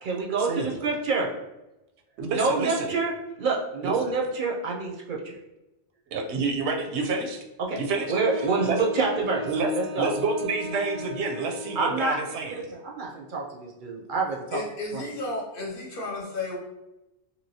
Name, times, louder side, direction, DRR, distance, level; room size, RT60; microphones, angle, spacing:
voice 1, 0.0-1.3 2.3-3.1 3.4-5.4 7.6-7.8 8.1-9.5 9.7-10.1 11.8-12.2 12.5-14.6 14.9-15.0, right 4 dB, 60° right, -1 dB, 0.6 m, -27 dB
voice 2, 2.2-2.9 3.8-3.9 6.1-7.4 7.8-8.2 8.6-8.8 9.5-9.7 10.0-12.6, right 3 dB, 85° right, 3 dB, 0.9 m, -28 dB
Wind instrument woodwind instrument, 7.9-12.0, left 2 dB, ahead, 0.5 m, -37 dB
voice 3, 14.5-16.6, left 2 dB, 60° left, -1 dB, 0.8 m, -33 dB
2.9 x 2.8 x 2.7 m, 0.96 s
omnidirectional pair, 1.1 m